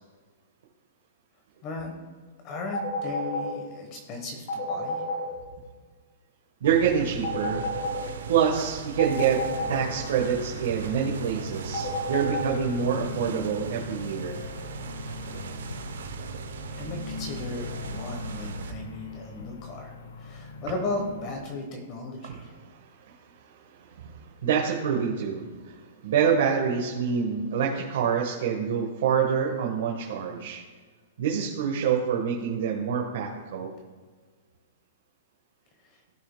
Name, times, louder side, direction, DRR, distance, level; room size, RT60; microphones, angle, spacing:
voice 1, 1.6-2.0 2.4-5.0 16.7-22.5 35.9-36.0, left 2 dB, 25° left, 3 dB, 1.0 m, -36 dB
sound 1, 2.7-3.5 4.5-5.2 7.2-8.0 9.0-9.7 11.7-12.5, left 3 dB, 50° left, 2.6 m, -30 dB
voice 2, 6.6-7.7 8.3-9.4 9.7-14.4 22.2-22.4 23.8-25.8 26.0-30.6 31.2-33.7, right 7 dB, 55° right, -1 dB, 1.2 m, -26 dB
sound 2, 6.6-18.7, right 6 dB, 85° right, 0.8 m, -38 dB
sound 3, 9.5-21.5, left 4 dB, 70° left, 0.7 m, -40 dB
15.0 x 6.3 x 2.2 m, 1.5 s
hypercardioid pair, 175°, 0 cm